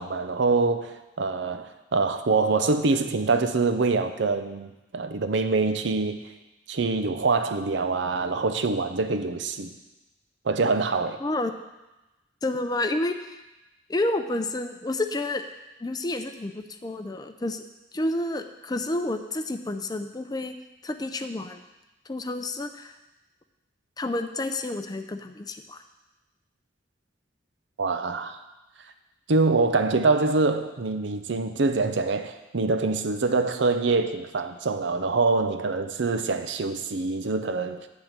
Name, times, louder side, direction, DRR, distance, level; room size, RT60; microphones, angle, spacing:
voice 1, 0.0-6.2 6.7-9.7 10.4-11.2 27.8-28.4 29.3-37.9, right 3 dB, 80° right, 8 dB, 0.6 m, -25 dB
voice 2, 11.2-11.5 12.4-13.4 13.9-15.4 15.8-17.6 17.9-20.5 20.8-21.6 22.1-22.9 24.0-25.8, left 2 dB, 20° left, 7 dB, 0.5 m, -29 dB
10.5 x 3.7 x 7.4 m, 1.0 s
head